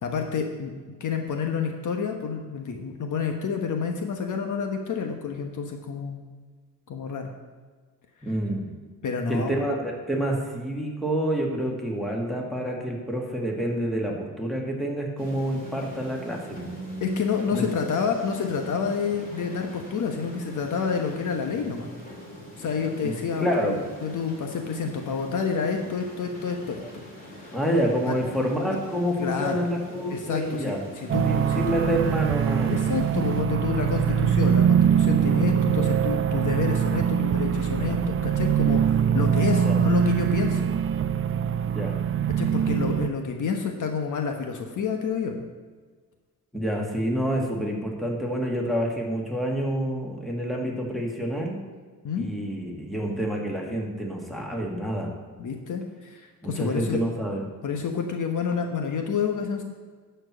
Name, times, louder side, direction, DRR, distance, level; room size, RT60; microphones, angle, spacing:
voice 1, 0.0-0.7 1.0-6.2 6.9-7.3 9.0-9.5 17.0-21.9 22.6-27.0 27.3-27.5 28.1-28.2 28.7-28.8 29.2-29.6 30.1-30.8 31.1-31.7 32.7-40.7 42.4-45.4 52.0-52.3 55.4-57.0 57.6-59.6, left 6 dB, 55° left, 4 dB, 1.1 m, -29 dB
voice 2, 8.2-8.7 9.3-16.8 17.5-17.6 23.0-23.8 27.5-30.8 31.2-32.9 34.1-34.3 39.6-39.8 41.7-42.0 46.5-51.6 52.2-55.1 56.4-57.4, equal, ahead, -1 dB, 2.0 m, -28 dB
sound 1, 15.2-33.4, equal, 25° left, 2.8 m, -42 dB
sound 2, 31.1-43.1, right 8 dB, 35° right, 0.5 m, -23 dB
11.5 x 4.6 x 7.5 m, 1.4 s
cardioid pair, 110°, 36 cm